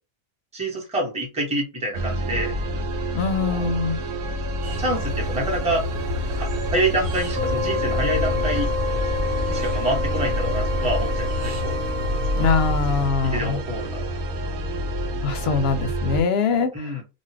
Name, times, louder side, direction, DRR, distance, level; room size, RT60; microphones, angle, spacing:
voice 1, 0.5-2.5 3.5-3.7 4.8-5.8 6.3-8.7 9.5-11.8 13.2-14.0 16.7-17.0, right 1 dB, 5° right, 0.8 m, -27 dB
sound 1, 1.9-16.2, right 1 dB, 85° right, 1.0 m, -28 dB
voice 2, 3.1-4.0 12.4-13.6 15.2-16.9, left 5 dB, 65° left, 0.7 m, -23 dB
sound 2, 4.6-13.1, equal, 55° right, 0.8 m, -31 dB
sound 3, 7.3-12.8, left 4 dB, 40° right, 0.4 m, -29 dB
2.7 x 2.3 x 3.2 m
omnidirectional pair, 1.3 m